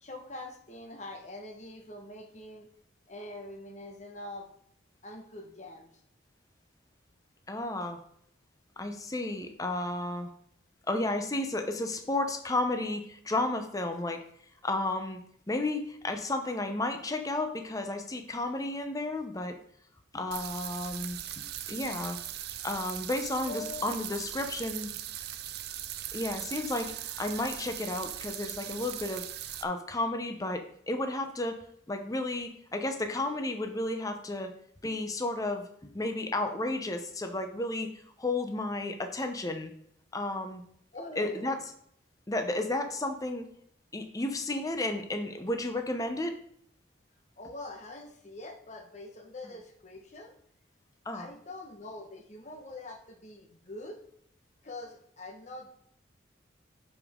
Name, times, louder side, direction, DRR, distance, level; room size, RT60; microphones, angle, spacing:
voice 1, 0.0-2.7 3.1-4.5 5.0-5.9 23.5-24.0 24.3-24.5 40.9-41.6 47.4-50.4 51.1-54.0 54.6-55.7, left 2 dB, 40° left, 3 dB, 1.2 m, -44 dB
voice 2, 7.5-8.0 8.8-10.3 10.9-14.2 14.6-15.2 15.5-19.6 20.1-22.2 22.6-24.9 26.1-29.3 29.6-31.6 31.9-34.5 34.8-37.9 38.2-39.7 40.1-40.6 41.2-41.6 42.3-43.5 43.9-46.3 51.1-51.3, left 2 dB, 20° left, 6 dB, 0.6 m, -32 dB
sound 1, 20.3-29.6, right 12 dB, 55° right, 0.5 m, -39 dB
11.0 x 5.1 x 3.6 m, 0.67 s
head